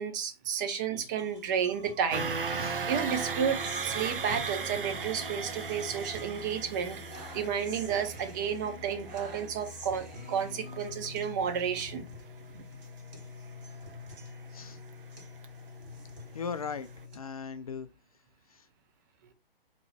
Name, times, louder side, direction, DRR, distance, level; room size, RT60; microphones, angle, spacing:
voice 1, 0.0-12.1, right 7 dB, 20° right, 0.6 m, -32 dB
sound 1, 1.2-17.2, left 3 dB, 45° right, 1.7 m, -46 dB
sound 2, 2.1-16.1 16.5-16.7 17.0-17.1, right 5 dB, 65° right, 0.7 m, -38 dB
voice 2, 16.3-16.9 17.1-17.9 18.5-18.6, left 6 dB, 40° left, 0.4 m, -38 dB
3.9 x 3.0 x 4.2 m
figure-of-eight pair, 130°, 29 cm